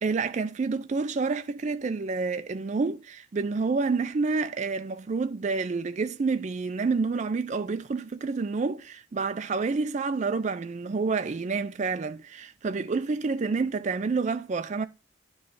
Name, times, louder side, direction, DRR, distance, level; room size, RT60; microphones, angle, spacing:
voice 1, 0.0-14.9, right 4 dB, 35° right, 0.3 m, -28 dB
9.4 x 3.2 x 5.6 m
head